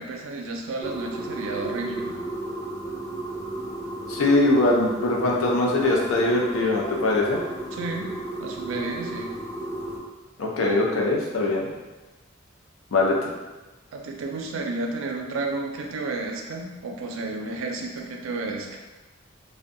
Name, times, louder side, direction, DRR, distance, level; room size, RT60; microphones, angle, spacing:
voice 1, 0.0-2.2 7.7-8.1 8.4-9.3 13.9-18.8, right 3 dB, 75° right, 2 dB, 0.4 m, -32 dB
sound 1, 0.8-10.0, right 2 dB, 15° left, 0.4 m, -33 dB
voice 2, 4.1-7.4 10.4-11.7 12.9-13.3, left 2 dB, 90° left, -1 dB, 0.5 m, -22 dB
2.6 x 2.2 x 2.5 m, 1.2 s
head